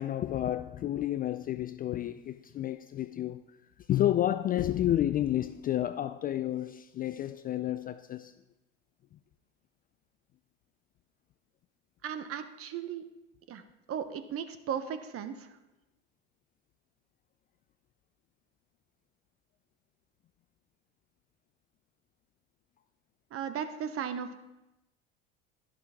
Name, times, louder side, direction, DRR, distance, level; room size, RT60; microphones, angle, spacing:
voice 1, 0.0-3.4 3.9-8.3, left 12 dB, 25° left, 0.3 m, -30 dB
voice 2, 12.0-13.0 13.5-13.6 13.9-15.6 23.3-24.4, right 8 dB, 40° right, 1.1 m, -36 dB
11.5 x 10.5 x 3.7 m
hypercardioid pair, 75°, 36 cm